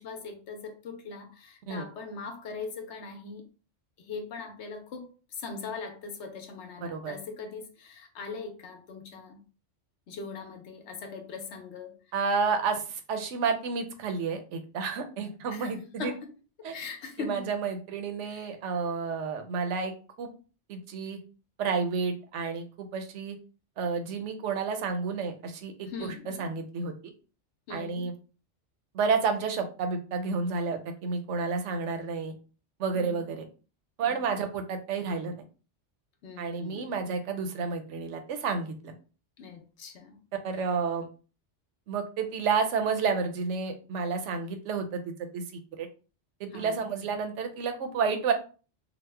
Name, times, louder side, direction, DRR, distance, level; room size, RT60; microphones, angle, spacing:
voice 1, 0.0-3.5 4.0-9.4 10.1-12.1 15.5-16.2 16.7-17.4 18.2-18.5 25.8-26.5 27.7-28.1 32.9-33.3 34.0-34.2 36.2-36.9 39.4-40.2 40.5-40.7 46.5-46.9, left 4 dB, 70° left, 0.9 m, -41 dB
voice 2, 6.8-7.1 12.1-16.1 16.6-16.7 17.2-19.9 20.2-20.3 20.7-21.2 21.6-23.4 23.8-25.9 26.4-26.9 27.7-28.1 28.9-32.3 32.8-33.4 34.0-35.4 36.4-38.9 40.4-41.1 41.9-45.0 45.3-45.4 45.8-45.9 46.4-48.3, right 5 dB, 80° right, 0.9 m, -30 dB
2.9 x 2.1 x 3.2 m
omnidirectional pair, 1.2 m